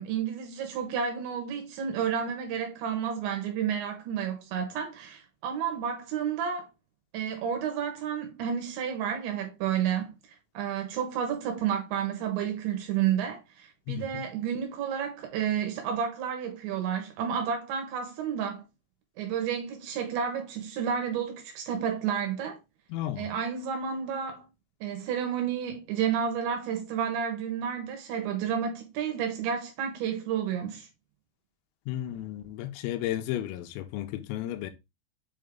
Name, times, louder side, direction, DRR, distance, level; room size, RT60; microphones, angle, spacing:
voice 1, 0.0-6.7 7.1-10.2 10.5-18.6 19.2-22.6 23.2-24.4 24.8-30.9, right 8 dB, 75° right, 3.1 m, -31 dB
voice 2, 13.9-14.3 22.9-23.3 31.9-34.7, left 13 dB, 85° left, 3.4 m, -33 dB
7.6 x 3.5 x 3.7 m
omnidirectional pair, 5.9 m